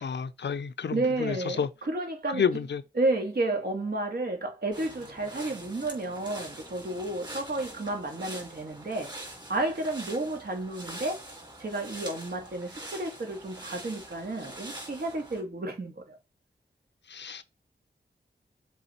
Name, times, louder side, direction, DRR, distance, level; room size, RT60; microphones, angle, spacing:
voice 1, 0.0-1.7 2.3-2.8 17.1-17.4, left 6 dB, 80° left, 0.6 m, -30 dB
voice 2, 0.9-2.7 2.9-11.2 11.6-16.2, right 2 dB, 60° right, 2.2 m, -32 dB
sound 1, 4.7-15.4, right 1 dB, 25° right, 3.4 m, -44 dB
6.9 x 3.8 x 4.4 m
wide cardioid pair, 90°, 18 cm